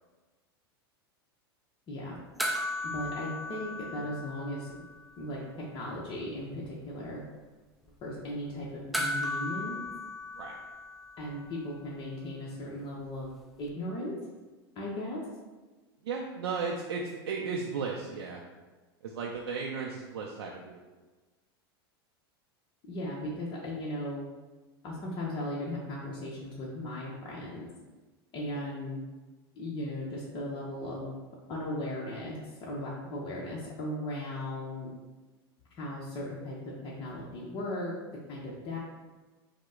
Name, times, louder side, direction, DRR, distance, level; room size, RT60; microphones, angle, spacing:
voice 1, 1.9-2.2 2.8-4.7 5.2-5.4 5.7-7.2 8.0-9.8 11.2-13.3 13.6-14.1 14.8-15.2 22.9-24.3 24.8-27.7 28.3-29.0 29.5-31.2 31.5-34.9 35.8-36.6 36.8-37.9 38.3-38.8, left 1 dB, 40° left, -5 dB, 0.9 m, -37 dB
sound 1, 2.4-5.1 5.3-5.4 8.9-11.5 13.7-13.8, left 1 dB, ahead, 0.5 m, -36 dB
voice 2, 16.0-18.4 19.0-20.8, right 5 dB, 80° right, -1 dB, 0.5 m, -35 dB
5.0 x 2.1 x 3.6 m, 1.3 s
hypercardioid pair, 105°, 13 cm